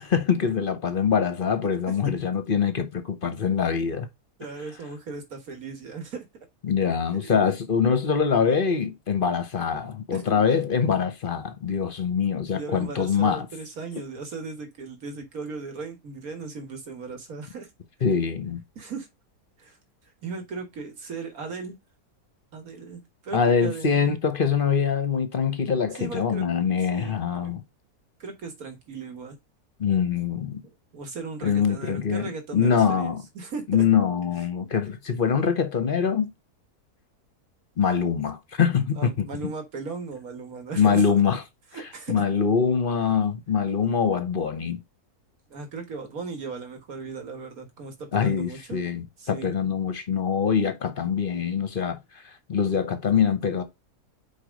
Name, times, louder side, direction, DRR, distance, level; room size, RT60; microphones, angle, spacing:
voice 1, 0.0-4.1 6.6-13.5 18.0-18.6 23.3-27.6 29.8-30.6 31.4-33.2 33.7-36.3 37.8-39.3 40.8-41.4 42.1-44.8 48.1-52.0 52.5-53.6, left 6 dB, 40° left, 0.9 m, -24 dB
voice 2, 4.4-6.3 10.1-10.2 12.5-17.7 18.8-19.1 19.6-19.8 20.2-21.8 22.5-24.2 26.0-26.4 26.8-27.5 28.2-29.4 30.6-33.9 39.0-41.2 41.7-42.2 45.5-48.8 49.2-49.6, right 4 dB, 65° right, 2.1 m, -37 dB
5.0 x 4.7 x 5.1 m
omnidirectional pair, 1.7 m